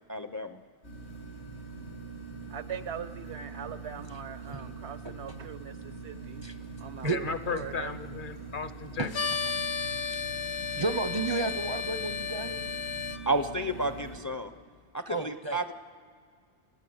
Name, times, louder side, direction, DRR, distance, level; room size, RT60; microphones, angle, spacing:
voice 1, 0.1-0.6 13.3-14.5 14.9-15.7, right 1 dB, 20° left, 9 dB, 0.5 m, -31 dB
sound 1, 0.8-14.2, right 3 dB, 90° left, 7.7 m, -43 dB
voice 2, 2.5-6.4 6.8-7.9, right 8 dB, 85° right, 12 dB, 1.2 m, -41 dB
voice 3, 7.0-9.1, left 5 dB, 55° left, 11 dB, 1.0 m, -35 dB
sound 2, 9.1-13.2, left 6 dB, 75° left, 1.2 m, -33 dB
voice 4, 10.8-12.6 15.1-15.6, right 3 dB, 35° right, 10 dB, 0.5 m, -32 dB
29.5 x 15.0 x 7.9 m, 2.1 s
omnidirectional pair, 1.1 m